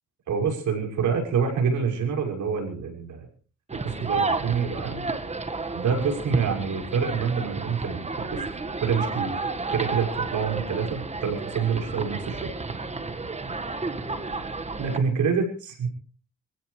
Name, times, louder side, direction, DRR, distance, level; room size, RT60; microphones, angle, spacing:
voice 1, 0.3-3.3 3.8-5.1 5.7-8.4 8.8-9.5 9.7-12.5 14.8-15.9, right 6 dB, 70° right, 2 dB, 6.2 m, -27 dB
sound 1, 3.7-15.0, right 3 dB, 20° right, 1.8 m, -31 dB
27.0 x 15.5 x 3.4 m, 0.39 s
cardioid pair, 90°, 30 cm